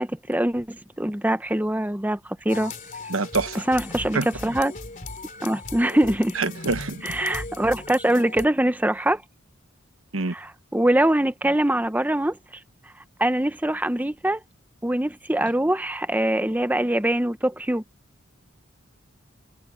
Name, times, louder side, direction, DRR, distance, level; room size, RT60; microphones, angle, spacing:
voice 1, 0.0-2.7 3.7-4.7 5.4-6.3 7.0-9.2 10.3-12.4 13.2-14.4 14.8-17.8, right 1 dB, 10° right, 0.8 m, -23 dB
sound 1, 2.5-8.5, left 3 dB, 40° left, 3.2 m, -37 dB
voice 2, 3.1-3.6 4.1-4.3 6.3-7.0 10.1-10.3, right 3 dB, 85° right, 1.2 m, -25 dB
head